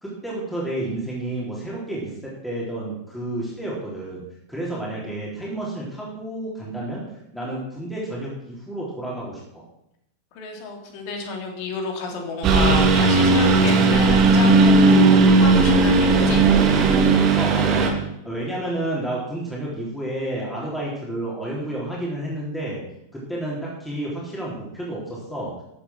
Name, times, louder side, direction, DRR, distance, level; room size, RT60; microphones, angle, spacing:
voice 1, 0.0-4.2 4.5-7.0 7.3-9.6 17.3-17.9 18.2-22.8 23.1-25.5, right 1 dB, 5° left, -6 dB, 4.2 m, -30 dB
voice 2, 10.3-16.5, left 3 dB, 45° left, 2 dB, 3.5 m, -31 dB
Engine, 12.4-17.9, right 3 dB, 35° right, 2.5 m, -16 dB
14.0 x 8.6 x 6.2 m, 0.81 s
figure-of-eight pair, 90°, 0 cm